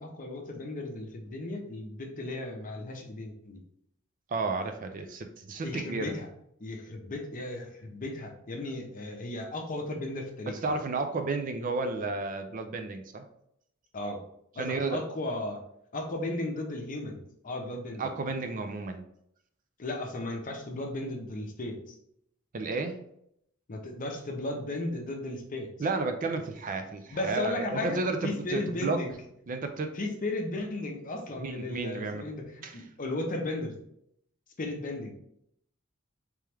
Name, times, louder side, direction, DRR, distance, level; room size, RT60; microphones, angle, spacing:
voice 1, 0.0-3.6 5.6-6.3 6.6-10.8 13.9-14.2 14.5-15.6 15.9-18.1 19.8-22.0 23.7-25.7 27.1-29.2 29.9-33.8 34.6-35.1, left 2 dB, 40° left, 3 dB, 0.7 m, -35 dB
voice 2, 4.3-6.2 10.5-13.2 14.6-15.0 18.0-19.0 22.5-23.0 25.8-29.0 29.5-30.0 31.4-32.3 32.6-32.8, right 3 dB, 40° right, 7 dB, 0.4 m, -32 dB
3.4 x 3.1 x 3.3 m, 0.72 s
head